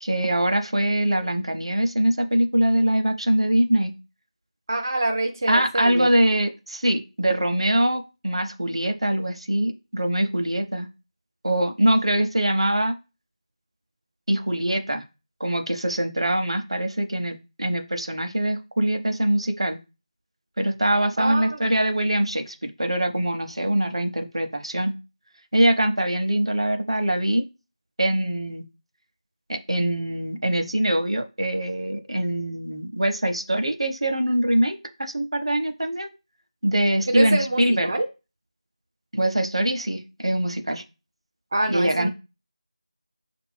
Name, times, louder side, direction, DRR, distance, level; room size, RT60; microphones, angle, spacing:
voice 1, 0.0-3.9 5.5-10.9 11.4-12.9 14.3-15.0 15.4-19.8 20.6-24.9 25.5-27.4 28.0-28.6 29.5-36.1 36.6-37.9 39.1-40.8 41.7-42.1, right 1 dB, 60° right, 7 dB, 0.7 m, -23 dB
voice 2, 4.7-6.1 21.2-21.7 37.1-38.1 41.5-42.1, right 1 dB, 30° right, 3 dB, 0.3 m, -25 dB
5.8 x 2.5 x 3.4 m, 0.29 s
figure-of-eight pair, 170°, 3 cm